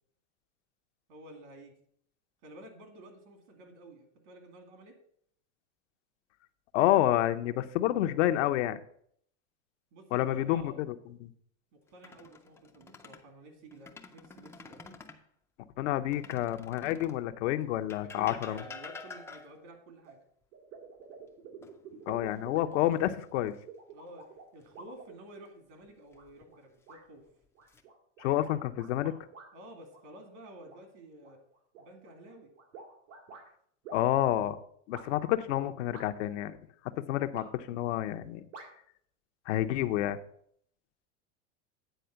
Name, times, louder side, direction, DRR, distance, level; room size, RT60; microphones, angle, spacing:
voice 1, 1.1-1.7 2.4-5.0 9.9-10.8 11.7-14.9 18.1-20.2 23.9-27.2 29.5-31.4 31.8-32.5, right 1 dB, 65° right, 6 dB, 2.4 m, -51 dB
voice 2, 6.7-8.8 10.1-10.9 11.2-11.3 15.8-18.6 22.1-23.5 28.2-29.1 33.9-34.6 34.9-36.6 36.9-38.4 39.5-40.2, left 13 dB, 70° left, 9 dB, 0.7 m, -29 dB
sound 1, 11.9-13.3 13.7-15.2 16.1-17.3 17.9-19.7 21.6-22.3 22.7-22.9 25.8-26.4 27.2-27.8, left 4 dB, 5° left, 0.4 m, -49 dB
sound 2, 20.0-20.1 20.5-25.6 26.1-26.6 26.9-27.0 27.5-29.5 29.9-30.8 31.2-33.5 33.8-34.0 34.9-35.1 35.9-36.4 37.3-37.8 38.5-38.7, right 5 dB, 90° right, 2.1 m, -49 dB
9.2 x 4.3 x 6.8 m, 0.66 s
supercardioid pair, 135°, 37 cm